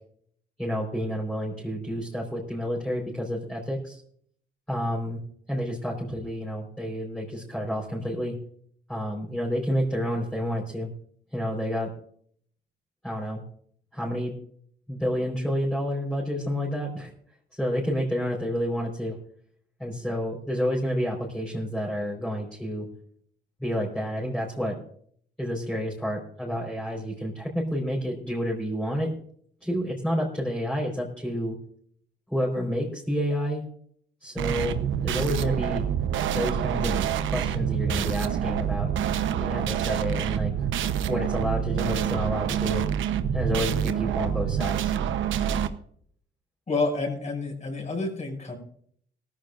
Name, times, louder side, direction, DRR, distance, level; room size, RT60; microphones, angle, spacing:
voice 1, 0.6-4.0 4.7-5.2 5.5-8.3 8.9-10.9 11.3-11.9 13.0-13.4 13.9-14.3 14.9-17.1 17.5-19.2 19.8-22.9 23.6-24.8 25.4-29.1 29.6-31.6 32.3-33.6 34.2-34.8 35.0-35.8 36.3-37.0 37.3-38.9 39.4-40.7 41.1-42.8 43.3-44.9, equal, 5° left, -4 dB, 4.5 m, -29 dB
sound 1, 34.4-45.7, right 9 dB, 80° right, 1.0 m, -27 dB
voice 2, 46.7-48.5, left 3 dB, 35° left, 1 dB, 6.7 m, -29 dB
18.0 x 14.5 x 2.6 m, 0.62 s
cardioid pair, 90°, 20 cm